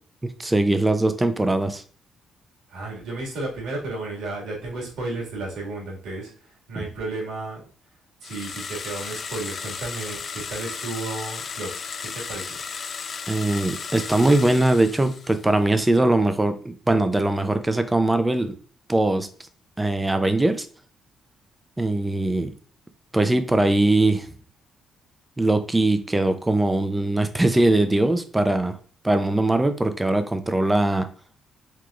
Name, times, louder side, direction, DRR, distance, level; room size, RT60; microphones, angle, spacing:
voice 1, 0.2-1.8 13.3-18.5 18.9-19.3 19.8-20.7 21.8-22.5 23.1-24.3 25.4-28.8 29.0-31.1, right 2 dB, 15° right, 9 dB, 0.6 m, -21 dB
voice 2, 2.7-7.6 8.2-12.6, right 2 dB, 85° right, -3 dB, 2.0 m, -33 dB
sound 1, 8.2-15.6, left 5 dB, 50° left, 0.3 m, -35 dB
4.7 x 3.6 x 2.4 m, 0.42 s
cardioid pair, 90°, 0 cm